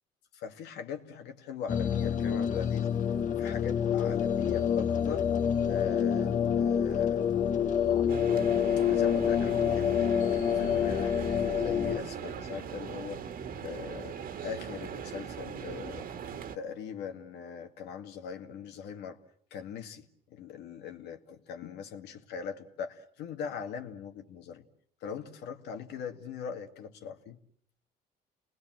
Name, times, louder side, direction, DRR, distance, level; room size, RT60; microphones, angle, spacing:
voice 1, 0.3-2.9 3.4-5.3 5.6-7.5 8.9-10.2 10.5-13.2 13.6-16.1 16.5-19.2 19.5-24.6 25.0-27.4, left 7 dB, 80° left, 5 dB, 2.2 m, -41 dB
sound 1, 1.7-12.0, left 8 dB, 50° left, 1.6 m, -27 dB
sound 2, 8.1-16.6, right 7 dB, 60° right, 1.8 m, -40 dB
29.5 x 20.0 x 7.6 m, 0.63 s
cardioid pair, 110°, 17 cm